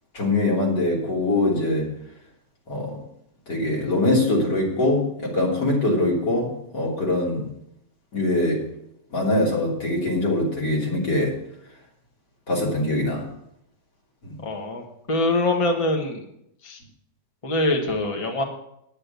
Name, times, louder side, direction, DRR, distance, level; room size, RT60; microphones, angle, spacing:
voice 1, 0.1-1.9 2.7-3.0 3.5-7.4 8.1-8.6 9.1-11.4 12.5-13.3 14.2-14.3, left 2 dB, 75° left, -3 dB, 3.8 m, -23 dB
voice 2, 14.4-16.2 16.6-16.8 17.4-18.4, left 2 dB, 20° left, 3 dB, 1.3 m, -24 dB
9.9 x 8.4 x 6.8 m, 0.76 s
omnidirectional pair, 1.9 m